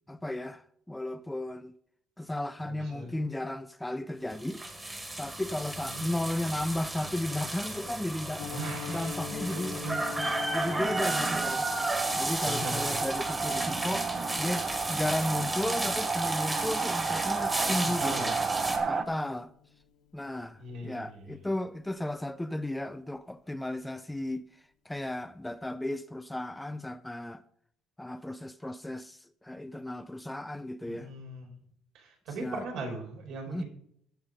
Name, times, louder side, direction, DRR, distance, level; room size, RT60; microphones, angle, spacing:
voice 1, 0.1-1.7 2.2-4.6 5.2-8.5 8.9-9.8 10.2-11.7 12.2-14.1 14.4-18.3 18.9-19.5 20.1-24.4 24.9-27.4 28.0-31.1 32.4-32.7 33.5-33.6, left 1 dB, 5° left, 0.4 m, -34 dB
voice 2, 2.7-3.2 5.8-6.0 8.5-9.1 9.5-10.1 10.5-10.8 11.1-11.2 12.2-13.1 18.0-18.4 20.6-21.4 30.9-31.5 31.9-33.6, right 2 dB, 70° right, 4.4 m, -40 dB
sound 1, 4.3-18.8, right 1 dB, 10° right, 1.8 m, -34 dB
Piano, 8.4-19.3 19.5-19.8 20.1-20.2 20.6-20.8 21.1-21.2, left 6 dB, 65° left, 1.5 m, -46 dB
sound 2, 10.0-19.0, right 5 dB, 25° right, 0.8 m, -32 dB
15.0 x 5.6 x 5.0 m
cardioid pair, 145°, 0 cm